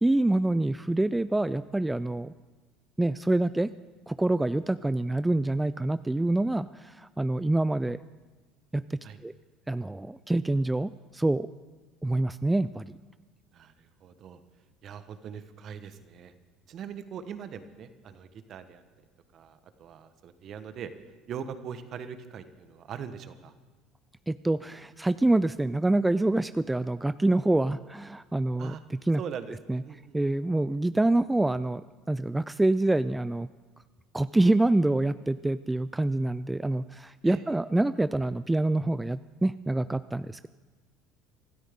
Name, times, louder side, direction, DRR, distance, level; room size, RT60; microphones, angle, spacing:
voice 1, 0.0-2.3 3.0-3.7 4.1-8.0 8.7-9.3 9.7-11.5 12.0-13.0 24.3-28.7 29.1-29.2 29.7-29.8 30.1-33.5 34.1-40.5, right 2 dB, 10° right, 14 dB, 0.4 m, -26 dB
voice 2, 13.5-14.4 14.8-16.3 16.7-18.8 19.3-20.9 21.3-23.5 28.6-28.8 29.2-30.2 37.2-37.6, right 7 dB, 50° right, 10 dB, 1.2 m, -41 dB
25.0 x 13.0 x 3.7 m, 1.3 s
hypercardioid pair, 80°, 0 cm